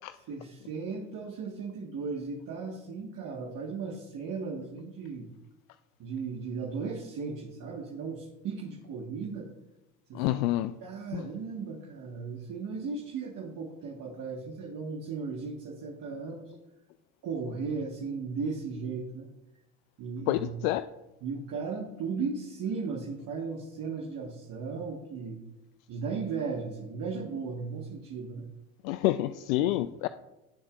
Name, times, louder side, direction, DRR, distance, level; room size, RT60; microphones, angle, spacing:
voice 1, 0.1-5.3 6.0-9.5 10.1-10.4 10.8-16.5 17.2-19.3 20.0-20.6 21.2-25.4 25.9-28.5 29.6-29.9, right 5 dB, 50° right, 0 dB, 1.6 m, -36 dB
voice 2, 10.1-10.7 11.1-11.2 20.3-20.8 28.8-30.1, left 16 dB, 75° left, 13 dB, 0.5 m, -28 dB
18.0 x 7.1 x 2.5 m, 1.0 s
hypercardioid pair, 70°, 41 cm